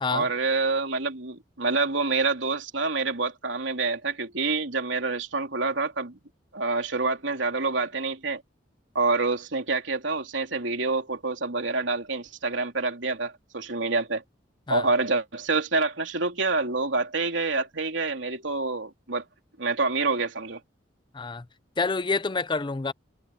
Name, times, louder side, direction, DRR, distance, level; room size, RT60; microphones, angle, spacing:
voice 1, 0.1-6.2 6.5-8.4 8.9-14.2 14.7-19.2 19.6-20.6, right 3 dB, 80° right, 3.2 m, -27 dB
voice 2, 21.1-21.4 21.8-22.9, left 4 dB, 25° left, 0.6 m, -27 dB
head